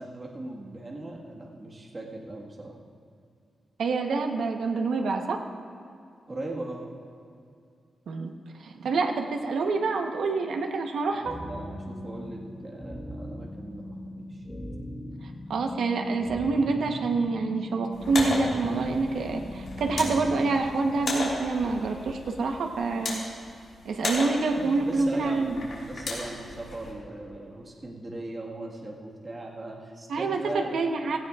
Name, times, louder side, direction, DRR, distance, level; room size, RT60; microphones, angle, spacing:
voice 1, 0.0-2.8 6.3-6.9 11.1-14.4 24.5-30.8, right 2 dB, 25° right, -3 dB, 1.6 m, -39 dB
voice 2, 3.8-5.4 8.1-8.3 8.6-11.4 15.5-23.2 23.8-25.6 30.1-31.2, right 3 dB, 75° right, 3 dB, 1.0 m, -27 dB
sound 1, 11.2-21.2, left 1 dB, 10° left, 1.4 m, -39 dB
sound 2, 17.9-26.9, left 2 dB, 60° left, 3.2 m, -36 dB
17.0 x 16.5 x 2.4 m, 2.4 s
wide cardioid pair, 170°, 0 cm